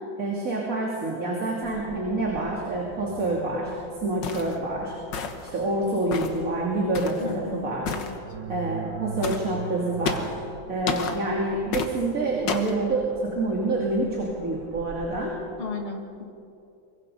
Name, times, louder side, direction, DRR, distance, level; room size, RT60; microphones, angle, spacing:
voice 1, 0.2-3.7 4.0-4.9 5.4-8.0 8.5-10.3 10.7-15.3, right 2 dB, 45° right, -3 dB, 3.0 m, -27 dB
sound 1, 1.6-15.2, right 5 dB, 85° right, 2.6 m, -42 dB
sound 2, 4.2-4.6 5.1-5.5 6.1-6.4 6.9-7.2 7.9-8.1 9.2-9.5 10.1-10.4 10.9-11.2 11.7-11.9 12.5-12.8, left 6 dB, 65° left, 2.0 m, -30 dB
voice 2, 7.2-8.1 15.6-16.3, left 4 dB, 30° left, 1 dB, 2.3 m, -35 dB
24.0 x 23.5 x 5.5 m, 2.6 s
omnidirectional pair, 2.1 m